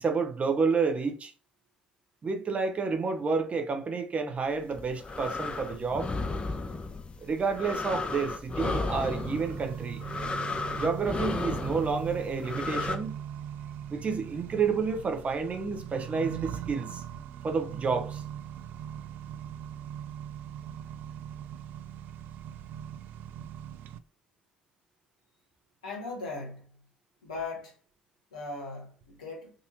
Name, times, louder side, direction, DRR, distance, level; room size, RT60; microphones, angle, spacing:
voice 1, 0.0-1.3 2.2-6.1 7.2-10.0 10.8-13.1 13.9-17.0 17.4-18.2, right 5 dB, 40° right, 0.9 m, -30 dB
sound 1, 4.6-13.0, left 3 dB, 30° left, 0.7 m, -34 dB
Accelerating revving vroom, 8.6-24.0, right 9 dB, 60° right, 0.4 m, -40 dB
voice 2, 25.8-26.7 27.2-27.8 28.3-29.5, left 3 dB, 85° left, 1.0 m, -38 dB
3.9 x 2.7 x 2.7 m
figure-of-eight pair, 50°, 4 cm